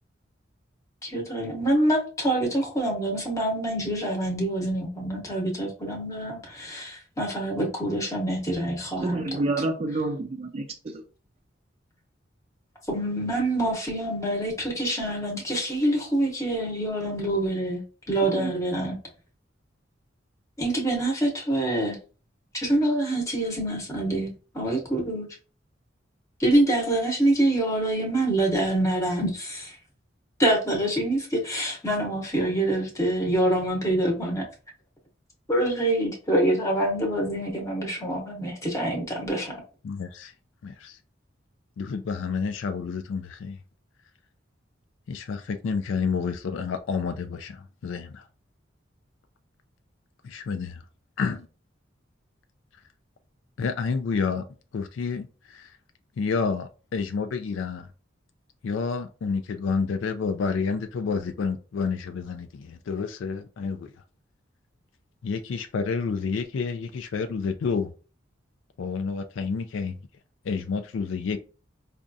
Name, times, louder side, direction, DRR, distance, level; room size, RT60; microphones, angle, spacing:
voice 1, 1.0-9.5 12.9-19.0 20.6-22.0 22.5-25.3 26.4-29.8 30.4-34.5 35.5-39.6, right 1 dB, 15° left, 0.8 m, -26 dB
voice 2, 9.0-11.0 18.2-18.5, right 2 dB, 30° right, 0.4 m, -29 dB
voice 3, 39.8-40.3 40.6-41.0 41.8-43.6 45.1-48.3 50.2-50.8 51.2-51.5 53.6-54.4 54.7-55.8 56.2-57.9 58.6-64.0 65.2-67.9 68.8-70.0 70.4-71.4, left 5 dB, 80° left, 0.3 m, -29 dB
5.0 x 2.3 x 2.6 m
head